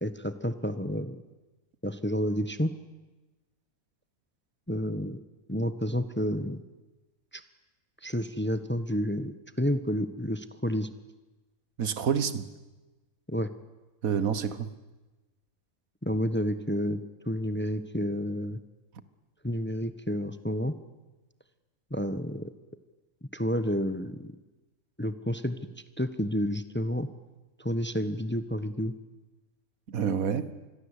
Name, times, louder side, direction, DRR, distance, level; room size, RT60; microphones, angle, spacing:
voice 1, 0.0-1.2 1.8-2.7 4.7-5.2 5.5-6.6 7.3-7.4 8.0-10.9 13.3-13.5 16.0-17.0 17.3-18.6 19.4-20.7 21.9-22.5 23.3-24.3 25.0-25.6 26.0-27.1 27.6-28.9, equal, 10° left, 1.0 m, -30 dB
voice 2, 11.8-12.5 14.0-14.7 29.9-30.5, right 7 dB, 70° right, 1.7 m, -28 dB
27.0 x 21.5 x 8.3 m
omnidirectional pair, 1.5 m